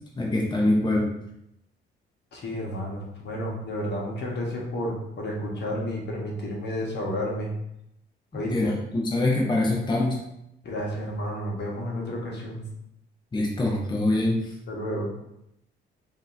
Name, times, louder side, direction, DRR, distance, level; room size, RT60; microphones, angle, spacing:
voice 1, 0.2-1.1 8.3-10.2 13.3-14.5, left 1 dB, 20° left, -2 dB, 0.8 m, -24 dB
voice 2, 2.3-7.5 8.3-8.7 10.6-12.6 14.7-15.1, equal, 60° left, -2 dB, 1.2 m, -31 dB
5.1 x 2.7 x 2.6 m, 0.81 s
cardioid pair, 90°, 20 cm